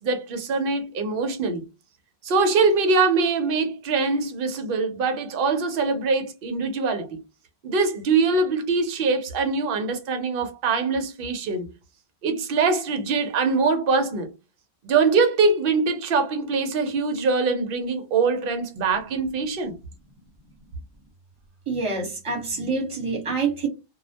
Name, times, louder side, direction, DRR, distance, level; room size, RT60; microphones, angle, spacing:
voice 1, 0.0-1.6 2.2-7.2 7.6-11.7 12.2-14.3 14.8-19.8, right 4 dB, 65° right, 0.8 m, -23 dB
voice 2, 21.7-23.7, right 4 dB, 30° right, 1.0 m, -26 dB
2.2 x 2.1 x 2.7 m
omnidirectional pair, 1.1 m